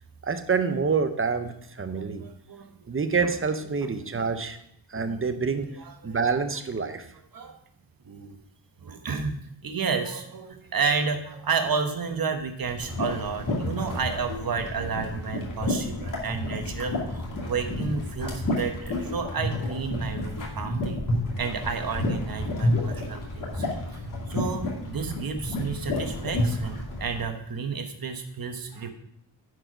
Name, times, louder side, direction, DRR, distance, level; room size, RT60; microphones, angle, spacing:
voice 1, 0.2-2.2 2.9-4.6 4.9-5.7 6.0-7.0, right 5 dB, 30° right, 9 dB, 0.7 m, -27 dB
voice 2, 1.9-2.7 4.0-4.3 5.0-5.2 5.8-6.2 7.3-7.5 8.0-8.4 8.8-9.4 9.6-21.0 21.4-28.9, right 5 dB, 50° right, 5 dB, 1.2 m, -31 dB
sound 1, 12.6-27.2, left 1 dB, 45° left, 2.4 m, -30 dB
10.0 x 4.7 x 5.0 m, 0.71 s
wide cardioid pair, 130°, 46 cm